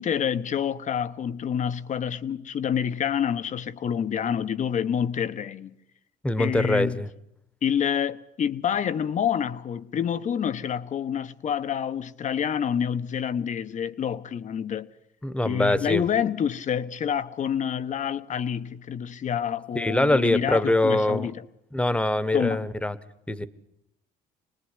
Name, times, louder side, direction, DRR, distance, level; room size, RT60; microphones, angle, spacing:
voice 1, 0.0-5.8 6.4-7.0 7.6-14.9 15.4-21.4 22.3-22.7, left 8 dB, 45° left, 1.2 m, -27 dB
voice 2, 6.2-7.1 15.2-16.0 19.7-21.3 21.7-23.0 23.3-23.5, left 1 dB, 5° left, 1.3 m, -23 dB
26.5 x 19.5 x 9.8 m
cardioid pair, 110°, 17 cm